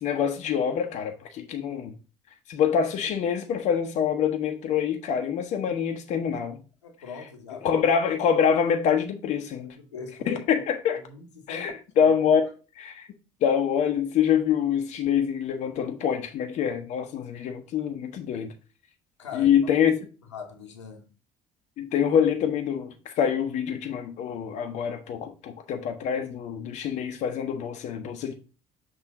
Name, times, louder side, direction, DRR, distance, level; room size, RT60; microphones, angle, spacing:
voice 1, 0.0-1.9 2.5-6.6 7.6-9.8 10.3-11.0 11.5-12.4 12.8-13.1 13.4-18.5 19.3-19.9 21.8-28.3, left 8 dB, 50° left, 0.8 m, -25 dB
voice 2, 6.8-7.7 9.6-10.4 11.1-11.6 19.2-19.5 20.3-21.0, left 5 dB, 85° left, 1.1 m, -41 dB
6.1 x 3.2 x 4.8 m
figure-of-eight pair, 55°, 15 cm